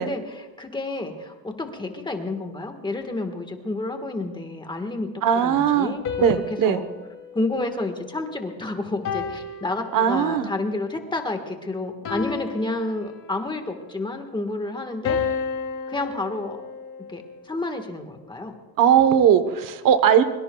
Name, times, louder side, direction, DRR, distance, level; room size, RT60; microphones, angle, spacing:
voice 1, 0.0-6.1 6.5-6.9 7.3-15.2 15.9-16.6 17.1-18.5, left 2 dB, 10° left, 5 dB, 1.4 m, -30 dB
voice 2, 5.2-6.8 9.9-10.5 18.8-20.2, right 8 dB, 60° right, 11 dB, 1.1 m, -19 dB
sound 1, 6.0-8.5 9.0-10.5 12.0-13.5 15.0-17.4, left 6 dB, 55° left, 2.7 m, -32 dB
24.5 x 23.0 x 2.3 m, 1.2 s
cardioid pair, 170°, 37 cm